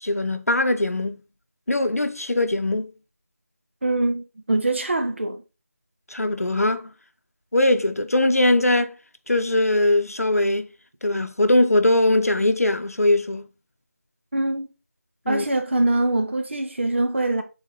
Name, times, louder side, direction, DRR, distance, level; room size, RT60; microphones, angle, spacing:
voice 1, 0.0-1.2 1.7-2.9 6.1-6.9 7.5-8.9 9.3-10.7 11.0-13.5 15.3-15.4, left 1 dB, 70° left, 0.9 m, -21 dB
voice 2, 3.8-5.4 14.3-14.7 15.3-17.4, right 2 dB, 50° right, 1.1 m, -23 dB
7.3 x 4.3 x 3.8 m
figure-of-eight pair, 165°, 8 cm